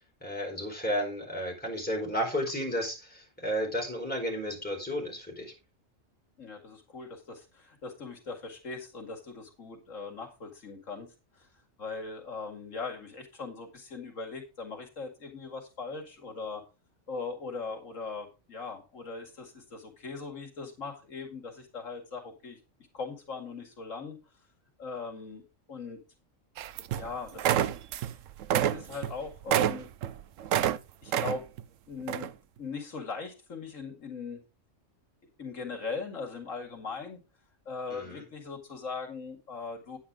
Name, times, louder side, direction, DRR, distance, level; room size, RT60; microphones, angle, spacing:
voice 1, 0.2-5.5 37.9-38.2, equal, 5° left, -1 dB, 4.7 m, -33 dB
voice 2, 6.4-11.1 11.8-16.6 17.1-22.6 22.9-24.2 24.8-25.4 25.7-26.0 26.9-27.7 28.5-29.9 31.0-31.4 31.9-32.3 32.6-34.4 35.4-37.2 37.7-40.0, left 4 dB, 85° left, 2 dB, 2.6 m, -40 dB
sound 1, 26.6-27.1 27.4-28.1 28.4-30.8 31.1-31.6 32.1-32.3, right 10 dB, 85° right, 1.0 m, -28 dB
9.7 x 9.0 x 3.8 m, 0.29 s
omnidirectional pair, 1.3 m